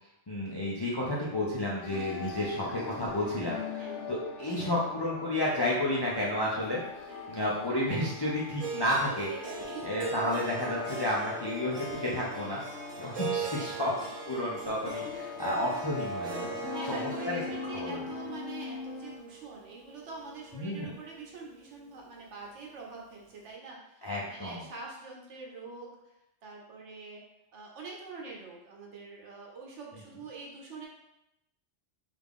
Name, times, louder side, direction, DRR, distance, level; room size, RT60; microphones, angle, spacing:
voice 1, 0.3-6.8 7.3-9.3 9.8-12.6 13.0-13.9 14.3-16.5 16.9-17.4 17.7-18.0 20.5-20.9 24.0-24.7, left 1 dB, 40° left, -5 dB, 0.3 m, -31 dB
sound 1, 1.8-19.2, left 4 dB, 80° left, 0.9 m, -42 dB
voice 2, 3.8-4.1 7.1-7.4 9.3-10.0 13.4-14.1 16.7-26.1 26.4-27.2 27.5-30.9, right 3 dB, 75° right, -1 dB, 1.1 m, -45 dB
Harp, 8.6-20.7, right 4 dB, 40° right, 0.6 m, -40 dB
3.4 x 2.4 x 3.6 m, 0.86 s
omnidirectional pair, 1.2 m